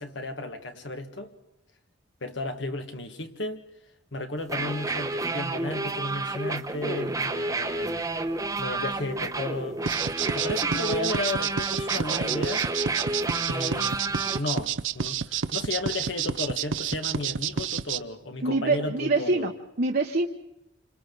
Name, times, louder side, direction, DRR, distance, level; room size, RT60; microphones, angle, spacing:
voice 1, 0.0-1.3 2.2-3.6 4.1-8.1 8.6-10.1 10.3-12.7 13.5-14.0 14.4-19.5, left 2 dB, 70° left, 1.7 m, -34 dB
sound 1, 4.4-14.4, right 2 dB, 20° right, 0.9 m, -30 dB
sound 2, 9.8-18.0, right 7 dB, 80° right, 0.7 m, -29 dB
voice 2, 18.4-20.3, right 3 dB, 50° right, 1.0 m, -25 dB
28.5 x 26.0 x 4.0 m
head